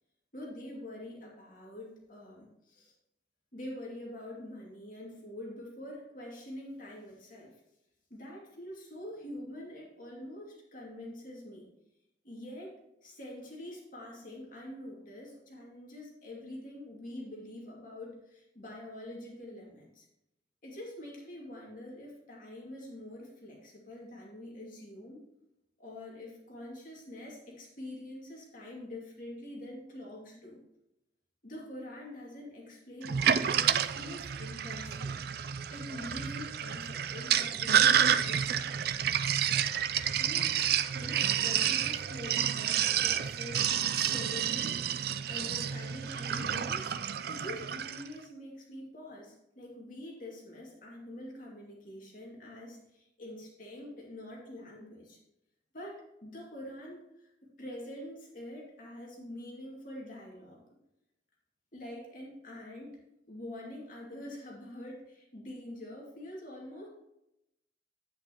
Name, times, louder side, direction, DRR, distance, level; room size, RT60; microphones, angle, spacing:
voice 1, 0.3-2.9 3.5-7.6 8.1-11.7 12.2-12.8 13.0-20.1 20.6-25.2 25.8-30.6 31.4-35.2 35.7-38.8 40.2-40.5 40.9-44.8 45.3-46.9 47.3-55.2 55.7-57.3 57.6-60.6 61.7-63.0 63.3-66.9, left 1 dB, 50° left, -3 dB, 2.4 m, -45 dB
Sink (filling or washing), 33.0-48.1, right 9 dB, 55° right, 0.4 m, -29 dB
10.5 x 9.0 x 3.0 m, 0.86 s
head